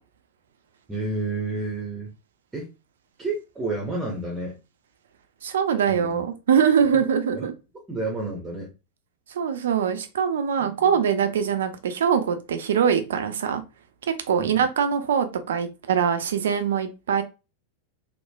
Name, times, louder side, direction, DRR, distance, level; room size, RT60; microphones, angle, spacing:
voice 1, 0.9-2.1 2.5-2.7 3.2-4.6 5.9-6.3 7.3-7.5 7.9-8.7 10.6-11.0 14.4-14.7, right 2 dB, 15° right, -1 dB, 0.7 m, -30 dB
voice 2, 5.4-7.5 9.3-13.6 14.1-17.2, right 7 dB, 60° right, 8 dB, 0.4 m, -23 dB
3.1 x 2.1 x 2.2 m, 0.28 s
figure-of-eight pair, 90°, 0 cm